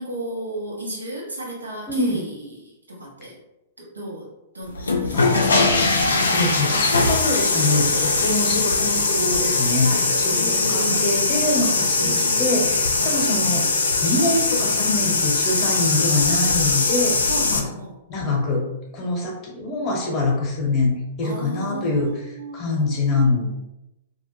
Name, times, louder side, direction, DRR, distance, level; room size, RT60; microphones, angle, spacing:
voice 1, 0.0-3.4 3.8-5.9 9.8-11.5 11.9-12.4 13.0-13.2 17.3-18.0 21.2-23.0, right 1 dB, 90° right, -4 dB, 0.8 m, -34 dB
voice 2, 1.9-2.2 5.1-5.5 6.3-9.9 10.2-13.7 14.0-17.7 18.1-18.7 18.9-22.1 22.5-23.5, left 2 dB, 35° left, -1 dB, 0.8 m, -24 dB
sound 1, 4.7-17.6, left 3 dB, 80° left, 0.4 m, -21 dB
2.3 x 2.0 x 3.0 m, 0.92 s
figure-of-eight pair, 110°, 0 cm